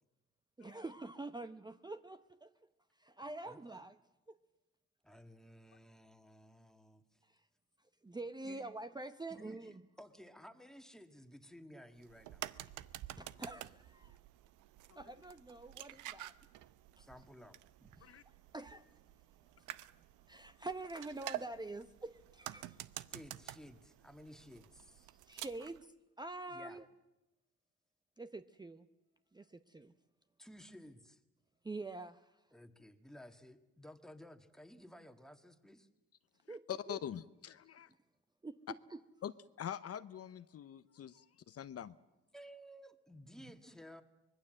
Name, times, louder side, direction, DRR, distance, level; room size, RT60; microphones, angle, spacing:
voice 1, 0.6-2.5 3.0-4.0 4.3-4.4 7.2-7.5 8.0-9.8 11.7-11.8 13.2-14.2 15.0-16.3 17.0-17.1 18.0-18.2 18.5-18.9 19.6-19.7 20.3-22.8 25.1-26.9 28.2-28.9 29.3-29.9 31.6-32.4 36.5-37.0 38.4-39.0, right 2 dB, 15° right, 10 dB, 0.8 m, -46 dB
voice 2, 5.0-7.2 8.4-8.6 9.3-12.4 17.0-17.6 23.1-25.1 26.5-26.8 30.4-31.2 32.5-35.9 42.3-44.0, equal, ahead, 7 dB, 1.8 m, -56 dB
sound 1, 12.0-25.8, right 14 dB, 90° right, 0.8 m, -50 dB
voice 3, 36.5-37.9 39.2-39.3 39.6-42.0, left 9 dB, 50° left, 13 dB, 0.8 m, -44 dB
24.5 x 20.5 x 7.7 m, 1.0 s
cardioid pair, 90°, 30 cm